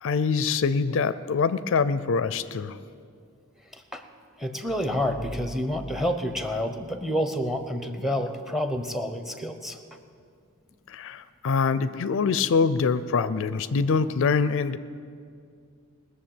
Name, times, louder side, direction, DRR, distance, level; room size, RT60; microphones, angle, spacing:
voice 1, 0.0-2.8 10.9-14.8, left 5 dB, 60° left, 14 dB, 0.4 m, -24 dB
voice 2, 3.7-4.0 4.4-9.8, equal, ahead, 8 dB, 0.8 m, -29 dB
sound 1, 4.7-7.6, right 1 dB, 25° right, 1.8 m, -44 dB
20.5 x 7.0 x 8.8 m, 2.3 s
head